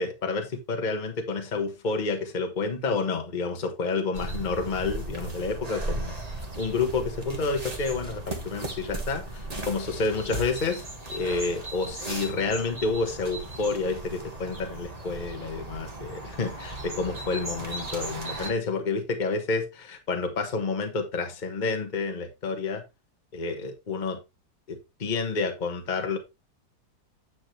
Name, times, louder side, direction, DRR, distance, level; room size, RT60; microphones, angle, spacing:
voice 1, 0.0-22.8 23.3-24.2 24.7-26.2, left 4 dB, 30° left, 1.3 m, -29 dB
sound 1, 4.1-18.5, right 2 dB, 25° right, 1.6 m, -36 dB
9.4 x 6.2 x 3.2 m
omnidirectional pair, 1.7 m